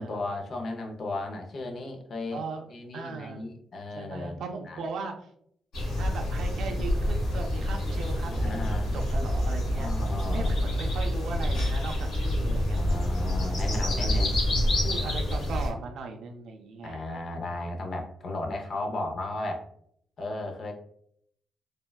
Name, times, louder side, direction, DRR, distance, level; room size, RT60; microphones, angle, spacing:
voice 1, 0.0-2.4 2.7-4.8 8.3-8.9 9.7-10.5 12.7-14.4 16.8-19.6 20.2-20.7, left 2 dB, 50° left, 3 dB, 0.6 m, -35 dB
voice 2, 2.3-3.5 3.9-5.3 6.0-8.6 8.9-9.9 10.3-12.8 13.6-14.2 14.8-17.0, right 4 dB, 75° right, 4 dB, 0.3 m, -38 dB
sound 1, 5.7-15.7, left 1 dB, 90° left, 1.4 m, -27 dB
3.3 x 2.2 x 2.2 m, 0.69 s
cardioid pair, 100°, 0 cm